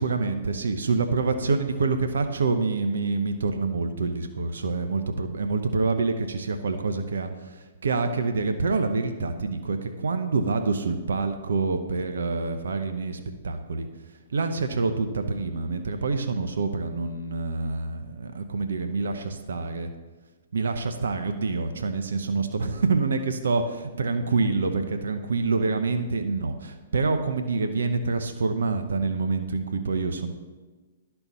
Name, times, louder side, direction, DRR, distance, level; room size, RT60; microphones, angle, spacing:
voice 1, 0.0-13.9 14.3-19.9 20.5-30.3, right 4 dB, 75° right, 8 dB, 0.8 m, -26 dB
12.5 x 4.5 x 5.5 m, 1.3 s
hypercardioid pair, 130°, 0 cm